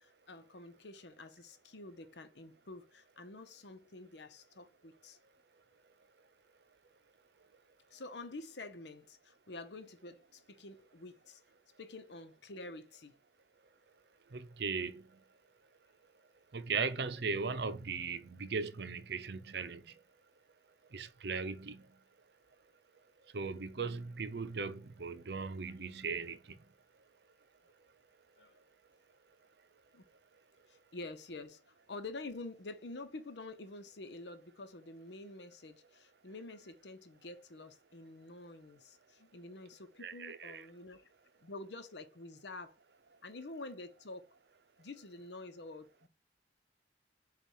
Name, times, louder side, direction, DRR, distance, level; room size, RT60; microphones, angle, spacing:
voice 1, 0.0-5.2 7.9-11.4 11.8-13.1 25.1-25.2 28.4-28.6 29.9-30.1 30.7-41.1 41.4-42.8 43.2-44.3 44.8-46.1, left 2 dB, 75° left, 0.9 m, -48 dB
voice 2, 14.3-15.0 16.5-19.8 20.9-21.8 23.3-26.4 40.0-40.6, right 4 dB, 65° right, 0.6 m, -38 dB
7.3 x 2.5 x 5.5 m
head